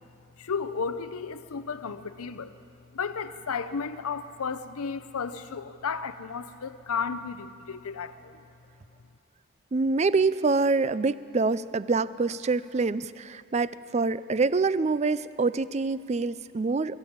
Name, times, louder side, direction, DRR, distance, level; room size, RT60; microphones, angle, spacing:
voice 1, 0.5-2.5 3.0-8.1, left 5 dB, 85° left, 11 dB, 0.6 m, -33 dB
voice 2, 9.7-17.0, right 4 dB, 30° right, 16 dB, 0.4 m, -26 dB
22.5 x 14.5 x 8.6 m, 2.7 s
head